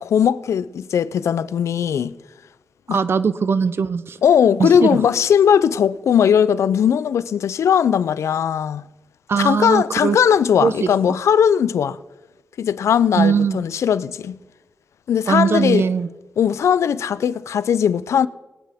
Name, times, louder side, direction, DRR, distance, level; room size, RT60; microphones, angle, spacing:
voice 1, 0.0-2.2 2.9-3.0 4.2-8.8 9.4-12.0 12.6-14.4 15.1-15.9 16.4-18.3, left 8 dB, 90° left, 0.4 m, -18 dB
voice 2, 2.9-4.2 4.6-5.0 9.3-10.2 10.6-10.9 13.2-13.6 15.3-16.1, right 6 dB, 55° right, 0.6 m, -20 dB
21.0 x 9.0 x 3.5 m
wide cardioid pair, 105°, 5 cm